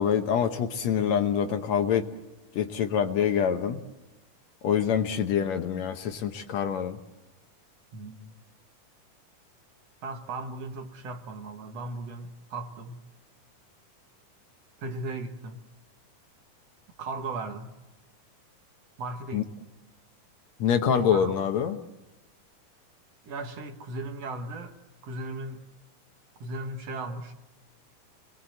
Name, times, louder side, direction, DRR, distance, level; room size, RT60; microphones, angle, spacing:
voice 1, 0.0-2.1 2.6-3.8 4.6-7.0 19.3-19.4 20.6-21.8, left 8 dB, 65° left, 7 dB, 2.0 m, -25 dB
voice 2, 7.9-8.3 10.0-13.0 14.8-15.6 17.0-17.7 19.0-19.4 20.9-21.3 23.2-24.8 25.0-25.7 26.4-27.3, right 2 dB, 60° right, 6 dB, 2.3 m, -37 dB
27.0 x 20.5 x 7.8 m, 1.0 s
omnidirectional pair, 3.7 m